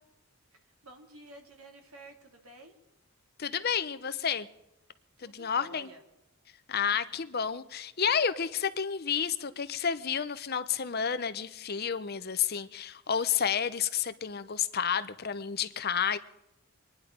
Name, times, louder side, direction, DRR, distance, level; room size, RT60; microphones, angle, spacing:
voice 1, 0.8-2.8 5.2-6.0 6.8-7.2, right 1 dB, 75° right, 2.7 m, -52 dB
voice 2, 3.4-4.5 5.2-5.9 6.7-16.2, left 7 dB, 45° left, 0.7 m, -30 dB
24.5 x 10.5 x 5.2 m
head